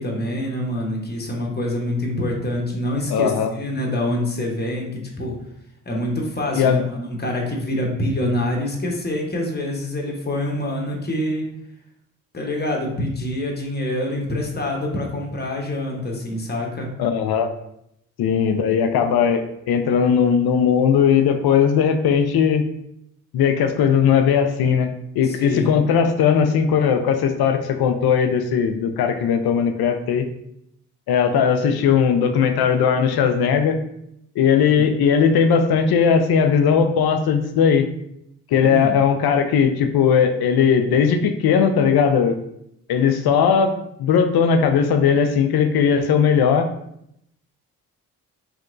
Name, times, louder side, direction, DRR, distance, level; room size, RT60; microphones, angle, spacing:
voice 1, 0.0-5.3 5.8-11.5 12.3-16.9 25.2-25.7 34.7-34.9 38.6-39.0, left 1 dB, 25° left, 0 dB, 1.1 m, -26 dB
voice 2, 3.1-3.5 6.6-6.8 17.0-17.5 18.2-22.6 23.3-24.9 25.2-30.3 31.1-33.8 34.4-37.9 38.5-42.4 42.9-43.7 44.0-46.7, left 7 dB, 70° left, 7 dB, 0.6 m, -18 dB
3.5 x 3.0 x 2.5 m, 0.77 s
supercardioid pair, 45°, 39 cm